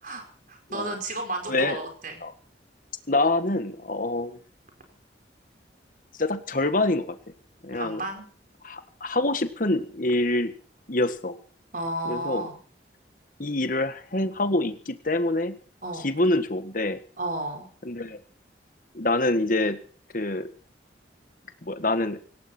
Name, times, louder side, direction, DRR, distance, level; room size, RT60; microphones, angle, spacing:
voice 1, 0.0-2.2 7.7-8.3 11.7-12.6 15.8-16.1 17.2-17.7, right 2 dB, 50° right, 4 dB, 5.0 m, -33 dB
voice 2, 1.5-1.8 2.2-2.3 3.1-4.4 6.2-7.2 7.6-8.0 8.6-10.5 10.9-11.4 12.1-12.4 13.4-15.6 16.0-17.0 17.8-18.2 18.9-19.8 20.1-20.5 21.6-22.2, left 2 dB, 50° left, 10 dB, 1.6 m, -26 dB
18.0 x 17.5 x 4.5 m, 0.42 s
head